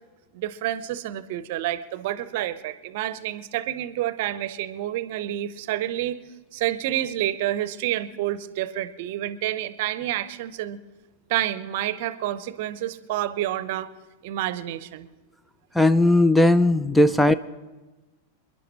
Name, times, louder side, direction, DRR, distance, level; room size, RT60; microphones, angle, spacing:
voice 1, 0.3-6.2 6.5-10.8 11.3-13.9 14.2-15.1 17.1-17.2, right 13 dB, 50° right, 15 dB, 0.7 m, -29 dB
voice 2, 15.7-17.3, left 1 dB, 5° left, 14 dB, 0.4 m, -17 dB
28.0 x 11.0 x 3.2 m, 1.2 s
figure-of-eight pair, 90°, 0 cm